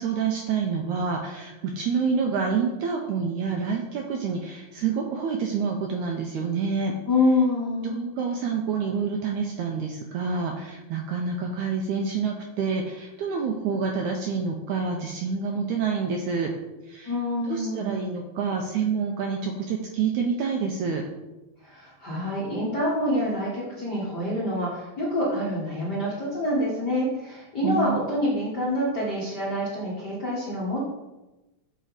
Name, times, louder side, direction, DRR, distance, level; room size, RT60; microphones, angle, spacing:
voice 1, 0.0-6.9 7.8-16.5 16.9-17.1 17.5-21.0 27.6-28.0, right 5 dB, 80° right, 2 dB, 1.7 m, -27 dB
voice 2, 7.1-7.9 17.0-17.9 21.6-30.8, left 1 dB, 55° left, -8 dB, 1.1 m, -26 dB
7.6 x 5.1 x 4.0 m, 1.1 s
omnidirectional pair, 4.0 m